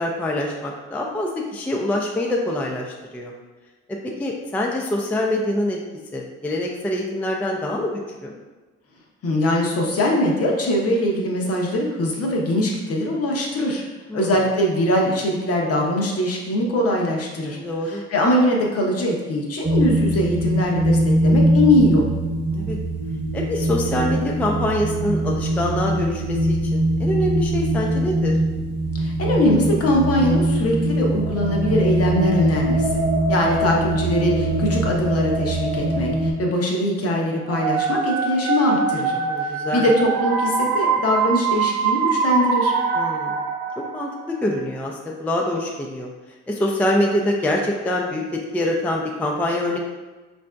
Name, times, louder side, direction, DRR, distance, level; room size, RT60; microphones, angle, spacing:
voice 1, 0.0-3.3 4.2-5.8 6.1-8.3 14.1-14.4 17.5-18.0 22.5-22.8 23.3-28.4 39.1-39.9 42.9-43.4 43.9-46.1 46.5-49.8, left 1 dB, 5° left, -1 dB, 0.3 m, -25 dB
voice 2, 9.2-13.8 14.1-17.6 17.9-22.1 29.0-32.9 33.3-39.1 39.4-42.7, left 1 dB, 50° left, -1 dB, 0.7 m, -22 dB
sound 1, 19.6-36.3, right 1 dB, 15° right, 0.9 m, -22 dB
sound 2, 37.5-44.3, right 5 dB, 85° right, 0.5 m, -23 dB
4.0 x 2.6 x 2.2 m, 1.2 s
cardioid pair, 90°, 30 cm